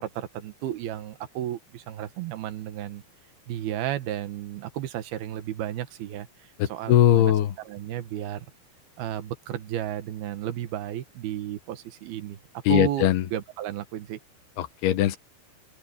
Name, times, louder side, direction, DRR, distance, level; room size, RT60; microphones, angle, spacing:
voice 1, 0.0-3.0 3.5-7.3 7.6-8.5 9.0-12.4 12.7-14.2, right 12 dB, 70° right, 3.1 m, -33 dB
voice 2, 6.6-7.5 12.7-13.2 14.6-15.2, left 13 dB, 75° left, 3.0 m, -20 dB
open air
omnidirectional pair, 4.8 m